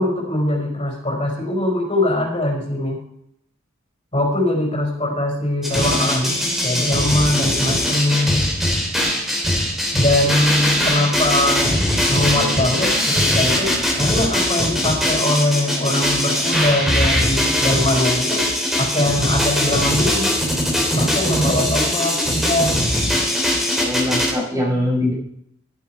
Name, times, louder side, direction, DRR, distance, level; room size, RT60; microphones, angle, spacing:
voice 1, 0.0-3.0 4.1-8.4 9.9-11.8 12.1-18.4 18.8-20.4 20.9-22.9, left 1 dB, 30° left, 0 dB, 4.8 m, -21 dB
sound 1, 5.6-24.3, left 1 dB, ahead, 3.1 m, -20 dB
voice 2, 23.7-25.1, left 1 dB, 15° right, -1 dB, 4.5 m, -22 dB
12.5 x 11.5 x 4.7 m, 0.74 s
head